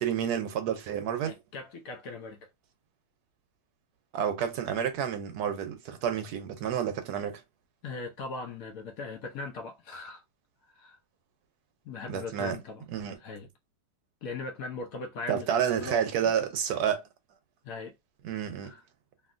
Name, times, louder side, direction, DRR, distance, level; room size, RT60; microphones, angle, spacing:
voice 1, 0.0-1.3 4.1-7.4 12.1-12.6 12.9-13.2 15.3-17.0 18.2-18.7, right 8 dB, 75° right, 1.1 m, -30 dB
voice 2, 1.2-2.5 7.8-10.2 10.7-11.0 11.8-12.8 13.2-13.5 14.2-15.5 15.7-16.3 17.6-17.9 18.6-18.8, left 3 dB, 65° left, 0.9 m, -39 dB
2.9 x 2.6 x 2.5 m
omnidirectional pair, 1.8 m